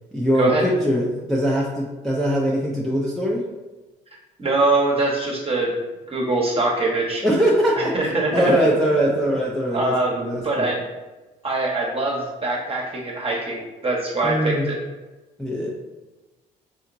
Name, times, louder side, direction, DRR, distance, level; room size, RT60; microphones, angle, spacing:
voice 1, 0.1-3.4 7.2-10.7 14.2-14.7 15.4-15.7, equal, ahead, -5 dB, 0.7 m, -22 dB
voice 2, 4.4-5.8 6.1-7.2 7.8-8.5 9.7-10.8 11.4-14.8, right 2 dB, 30° right, -2 dB, 1.1 m, -23 dB
3.6 x 2.7 x 2.6 m, 1.1 s
hypercardioid pair, 55°, 21 cm